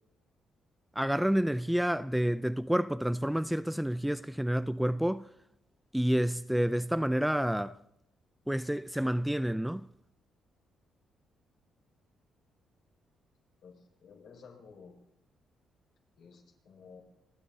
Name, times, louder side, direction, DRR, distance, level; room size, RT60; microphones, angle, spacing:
voice 1, 1.0-5.3 5.9-7.8 8.5-9.9, equal, 5° right, 0.5 m, -29 dB
voice 2, 13.6-14.9 16.2-17.0, left 5 dB, 70° left, 6.0 m, -53 dB
28.5 x 10.5 x 4.1 m
cardioid pair, 90°, 0 cm